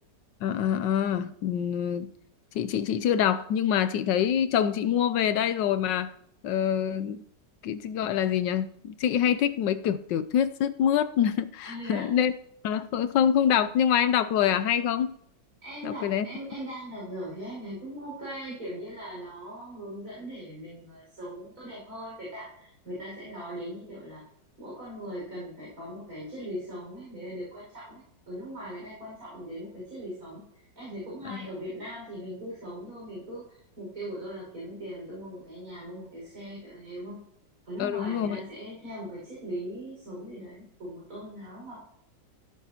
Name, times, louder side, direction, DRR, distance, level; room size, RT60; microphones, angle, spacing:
voice 1, 0.4-2.1 2.5-6.1 6.4-7.2 7.6-12.3 12.6-15.1 15.8-16.3 31.2-31.4 37.8-38.4, left 9 dB, 85° left, 1.3 m, -25 dB
voice 2, 11.6-12.1 15.6-24.2 24.6-37.2 37.7-41.8, equal, 50° right, 6.2 m, -40 dB
16.0 x 9.5 x 2.9 m
omnidirectional pair, 1.9 m